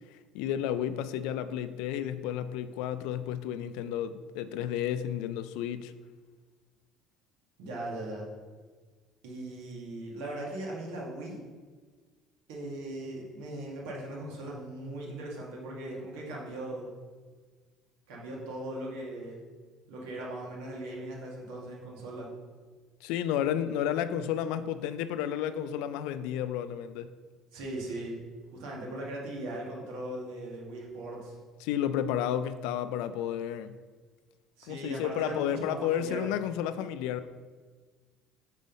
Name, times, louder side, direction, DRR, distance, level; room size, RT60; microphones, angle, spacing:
voice 1, 0.3-5.9 23.0-27.1 31.6-33.8 34.7-37.3, left 10 dB, 80° left, 12 dB, 0.3 m, -32 dB
voice 2, 7.6-8.3 9.2-11.4 12.5-16.9 18.1-19.4 19.9-22.3 27.5-28.2 28.5-31.4 34.6-36.3, right 1 dB, 85° right, -3 dB, 1.9 m, -39 dB
5.3 x 4.1 x 5.5 m, 1.5 s
cardioid pair, 145°, 0 cm